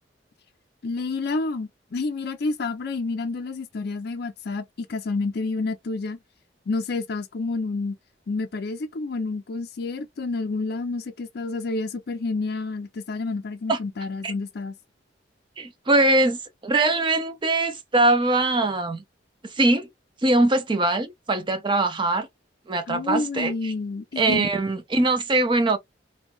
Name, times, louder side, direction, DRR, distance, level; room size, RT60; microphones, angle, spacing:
voice 1, 0.8-6.2 6.7-8.0 8.3-14.7 22.9-24.5, left 3 dB, 60° left, 0.5 m, -29 dB
voice 2, 15.6-19.0 19.4-19.9 20.2-22.3 22.7-23.7 24.2-25.8, right 2 dB, 25° right, 0.6 m, -22 dB
2.6 x 2.2 x 2.8 m
head